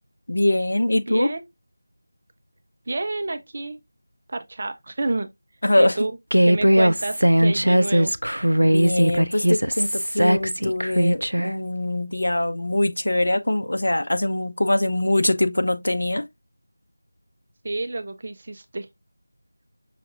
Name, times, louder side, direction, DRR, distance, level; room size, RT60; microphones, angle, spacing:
voice 1, 0.3-1.3 5.6-6.0 8.6-16.2, left 1 dB, 65° left, 0.7 m, -23 dB
voice 2, 1.1-1.4 2.9-3.8 4.3-5.3 5.8-6.2 6.4-8.1 17.6-18.9, right 2 dB, 40° right, 0.6 m, -29 dB
Human voice, 6.3-11.5, equal, 85° right, 0.4 m, -19 dB
5.8 x 2.6 x 2.7 m
figure-of-eight pair, 170°, 0 cm